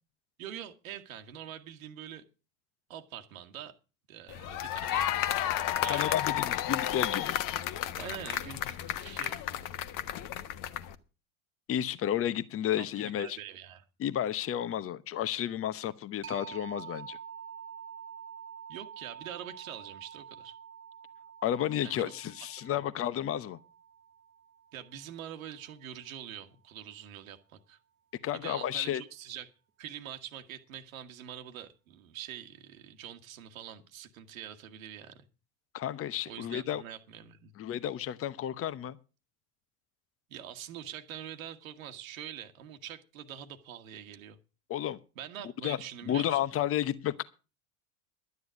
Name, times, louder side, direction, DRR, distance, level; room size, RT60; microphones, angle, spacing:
voice 1, 0.4-2.2 2.9-3.7 4.1-5.1 5.8-6.2 8.0-9.7 12.7-13.8 18.7-20.6 21.8-22.1 22.6-22.8 24.7-27.8 28.3-29.5 29.8-35.2 36.3-37.5 40.3-44.4 45.1-46.4, right 10 dB, 70° right, 1.5 m, -44 dB
sound 1, 4.3-10.9, left 12 dB, 50° left, 1.3 m, -32 dB
voice 2, 5.6-7.4 11.7-13.4 14.0-17.2 21.4-23.6 28.2-29.0 35.7-36.8 37.6-39.0 44.7-45.0 45.6-45.8 46.1-47.2, left 11 dB, 30° left, 1.0 m, -32 dB
sound 2, 16.2-25.6, right 8 dB, 30° right, 1.5 m, -48 dB
12.0 x 9.5 x 6.3 m
hypercardioid pair, 75°, 42 cm